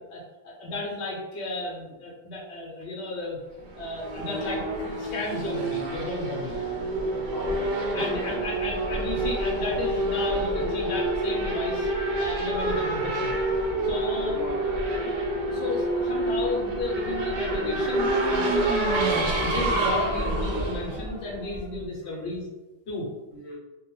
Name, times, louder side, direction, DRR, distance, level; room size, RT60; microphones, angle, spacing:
voice 1, 0.1-3.4 3.8-6.6 7.9-11.9 12.2-13.4 13.8-14.4 15.0-18.9 19.2-22.4 22.9-23.1, left 2 dB, 65° left, -3 dB, 0.8 m, -33 dB
Race car auto racing / Accelerating revving vroom, 3.6-21.8, right 1 dB, 60° right, 0.5 m, -27 dB
voice 2, 7.0-7.7 8.0-8.5 14.3-14.6 22.0-22.3 23.3-23.6, equal, 30° left, -6 dB, 0.4 m, -38 dB
2.2 x 2.1 x 2.9 m, 1.1 s
omnidirectional pair, 1.3 m